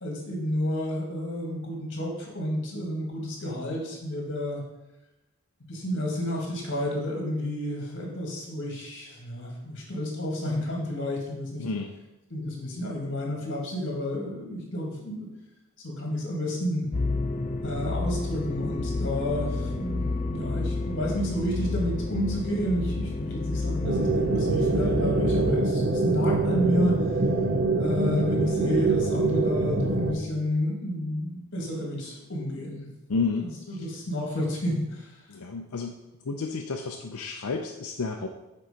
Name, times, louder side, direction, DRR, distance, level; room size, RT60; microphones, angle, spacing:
voice 1, 0.0-4.6 5.7-11.6 12.3-15.3 15.8-16.9 17.6-26.9 27.8-32.9 33.4-35.1, equal, 55° left, -1 dB, 2.0 m, -30 dB
voice 2, 11.6-11.9 33.1-33.5 35.3-35.9 36.2-38.3, left 4 dB, 85° left, 2 dB, 0.5 m, -31 dB
sound 1, 16.9-25.5, left 3 dB, 35° left, 0.5 m, -30 dB
sound 2, 23.8-30.1, right 2 dB, 50° right, 0.7 m, -24 dB
6.7 x 4.6 x 5.1 m, 0.99 s
head